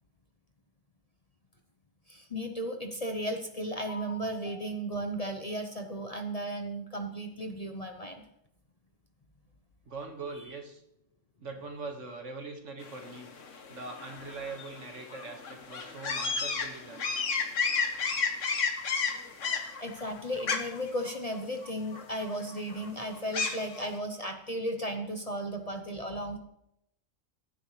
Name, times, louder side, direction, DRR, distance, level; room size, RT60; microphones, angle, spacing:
voice 1, 2.1-8.2 19.8-26.4, right 1 dB, 35° left, 5 dB, 0.8 m, -35 dB
voice 2, 9.9-10.8 11.4-13.3 13.7-17.1, right 3 dB, 65° right, 4 dB, 1.9 m, -42 dB
sound 1, 12.8-23.8, left 5 dB, 70° left, 1.5 m, -33 dB
15.5 x 10.5 x 3.2 m, 0.79 s
omnidirectional pair, 1.4 m